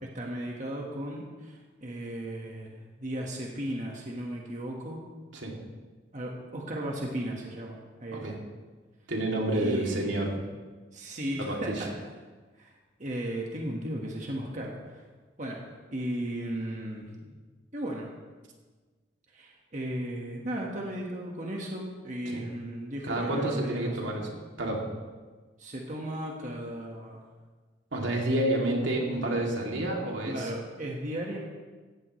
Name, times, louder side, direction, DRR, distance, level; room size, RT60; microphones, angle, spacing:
voice 1, 0.0-5.0 6.1-8.4 9.5-10.4 10.9-12.1 12.6-12.7 13.0-15.0 15.4-15.6 15.9-17.1 17.7-18.1 19.3-24.2 25.6-27.2 30.3-31.4, right 1 dB, 40° right, -1 dB, 1.5 m, -36 dB
voice 2, 9.1-10.3 11.4-11.9 22.3-22.4 23.0-24.3 24.6-24.9 27.9-30.5, right 1 dB, 80° right, -1 dB, 2.7 m, -29 dB
17.5 x 15.0 x 3.2 m, 1.4 s
head